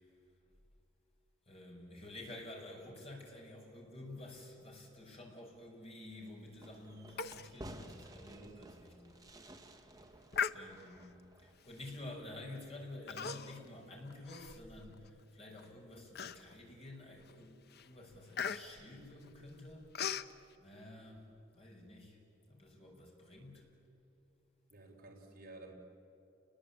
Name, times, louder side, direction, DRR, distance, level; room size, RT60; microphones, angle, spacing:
voice 1, 1.5-9.1 9.7-9.9 10.5-19.9 20.6-21.3 21.5-22.2 22.5-23.6, left 1 dB, 30° left, 0 dB, 6.5 m, -50 dB
Fireworks, 6.6-11.8, right 1 dB, 20° right, 1.9 m, -54 dB
Human voice, 7.2-7.5 7.8-7.9 8.4-8.5 9.1-9.4 10.3-11.1 11.8-12.0 13.1-13.7 14.1-15.1 15.6-15.7 16.2-16.7 17.2-17.4 17.7-20.3, left 7 dB, 55° left, 0.8 m, -40 dB
voice 2, 8.3-8.6 24.7-25.7, right 2 dB, 45° right, -1 dB, 4.4 m, -53 dB
30.0 x 21.0 x 8.7 m, 2.9 s
head